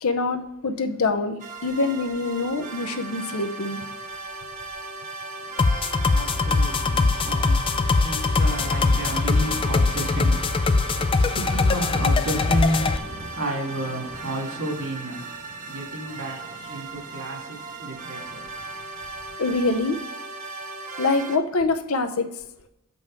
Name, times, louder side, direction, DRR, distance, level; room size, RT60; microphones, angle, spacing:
voice 1, 0.0-3.8 19.4-20.0 21.0-22.3, left 3 dB, 85° left, 0.8 m, -25 dB
sound 1, 1.4-21.4, right 3 dB, 35° right, 0.7 m, -37 dB
voice 2, 5.4-18.7, right 1 dB, 70° right, 2.4 m, -32 dB
sound 2, 5.6-13.0, left 3 dB, 25° left, 0.3 m, -22 dB
6.8 x 5.4 x 4.7 m
head